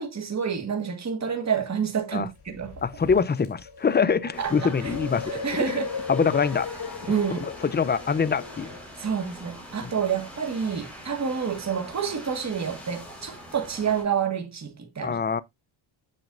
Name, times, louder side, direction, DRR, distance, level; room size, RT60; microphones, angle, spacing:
voice 1, 0.0-2.8 4.4-4.5 4.8-4.9 5.4-5.9 7.1-7.5 9.0-15.2, right 7 dB, 35° right, 1.7 m, -28 dB
sound 1, 2.2-8.8, left 5 dB, 50° left, 2.5 m, -38 dB
voice 2, 2.8-5.8 6.1-6.7 7.4-8.7 9.8-9.9 15.0-15.4, left 6 dB, 20° left, 0.5 m, -24 dB
sound 2, 4.3-14.0, equal, 5° left, 4.3 m, -43 dB
7.6 x 6.4 x 2.5 m
cardioid pair, 95°, 50 cm